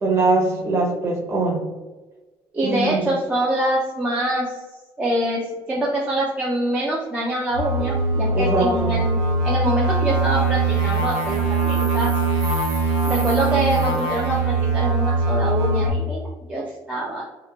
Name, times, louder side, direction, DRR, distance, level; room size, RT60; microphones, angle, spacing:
voice 1, 0.0-1.7 2.6-3.1 8.3-8.9, right 2 dB, 30° right, -2 dB, 0.7 m, -22 dB
voice 2, 2.5-4.4 5.0-9.2 9.4-12.1 13.1-16.2 16.5-17.2, right 1 dB, 15° right, -5 dB, 0.3 m, -24 dB
sound 1, 7.5-15.9, right 3 dB, 90° right, 0.6 m, -22 dB
2.9 x 2.1 x 2.2 m, 1.2 s
cardioid pair, 155°, 9 cm